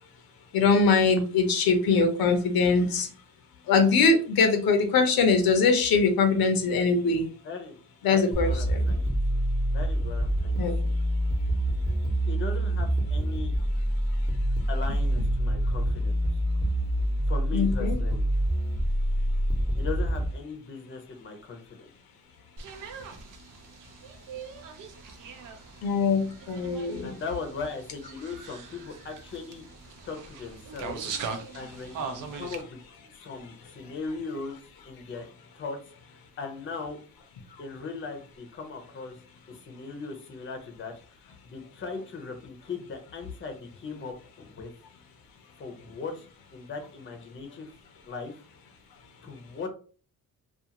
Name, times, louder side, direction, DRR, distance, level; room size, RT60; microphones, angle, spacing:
voice 1, 0.5-3.1 3.7-7.3 8.0-8.9 10.6-10.8 17.5-18.0 25.8-27.1, left 4 dB, 80° left, 6 dB, 0.7 m, -22 dB
voice 2, 7.4-7.8 8.1-9.0 9.7-10.9 12.3-13.5 14.7-16.1 17.3-18.3 19.8-21.9 27.0-29.6 30.0-31.0 31.5-32.8 33.2-34.6 34.9-35.3 35.5-35.8 36.4-37.0 37.6-39.2 39.5-40.9 41.4-44.7 45.6-46.3 46.5-47.7 48.0-48.4 49.2-49.7, left 4 dB, 35° left, 5 dB, 0.6 m, -38 dB
sound 1, 8.3-20.3, equal, 25° right, 0.9 m, -26 dB
sound 2, 22.6-32.6, right 5 dB, 60° right, 0.6 m, -41 dB
2.4 x 2.4 x 2.8 m, 0.40 s
cardioid pair, 95°, 36 cm